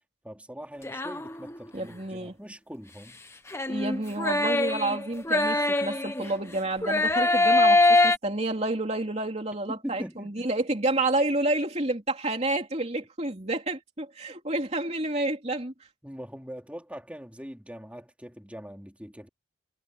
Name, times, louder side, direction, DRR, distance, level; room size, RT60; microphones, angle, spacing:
voice 1, 0.2-3.2 9.7-10.5 16.0-19.3, equal, 5° right, 4.1 m, -41 dB
sound 1, 0.8-1.7 3.5-6.4 6.8-8.2, left 2 dB, 15° left, 1.5 m, -23 dB
voice 2, 1.7-2.3 3.7-15.7, right 2 dB, 30° right, 3.1 m, -29 dB
head